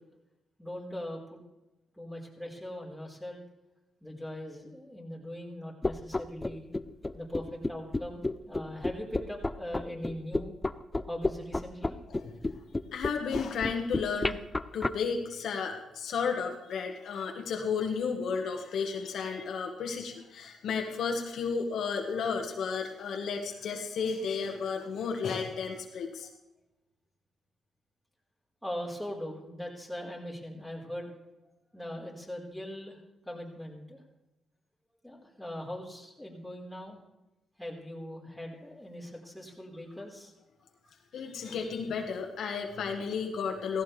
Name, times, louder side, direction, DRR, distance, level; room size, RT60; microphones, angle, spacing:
voice 1, 0.6-1.4 2.0-3.4 4.0-6.6 7.1-10.5 11.0-12.0 19.3-19.4 28.6-31.1 31.7-33.0 33.2-34.0 35.0-37.0 37.6-40.3 40.8-41.3, left 1 dB, ahead, -1 dB, 4.7 m, -40 dB
sound 1, 5.8-14.9, left 2 dB, 20° left, 0.6 m, -31 dB
voice 2, 12.1-12.6 12.9-14.4 14.7-26.3 41.1-43.8, left 5 dB, 70° left, 2 dB, 1.6 m, -33 dB
16.5 x 15.5 x 3.4 m, 0.98 s
cardioid pair, 90°, 0 cm